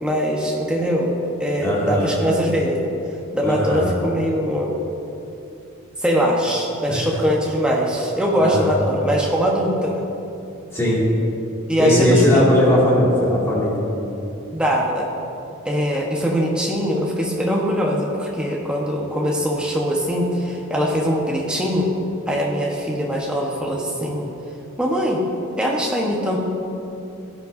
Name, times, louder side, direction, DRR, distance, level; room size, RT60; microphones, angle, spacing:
voice 1, 0.0-1.1 1.4-2.8 3.3-4.7 6.0-10.0 11.7-12.5 14.5-15.1 15.6-21.9 22.3-24.2 24.8-25.2 25.6-26.4, equal, 5° right, -3 dB, 1.1 m, -22 dB
voice 2, 1.6-2.1 3.4-3.9 6.9-7.1 8.4-8.8 10.7-11.0 11.8-13.8, left 1 dB, 10° left, -7 dB, 2.3 m, -18 dB
16.0 x 9.8 x 2.7 m, 2.9 s
head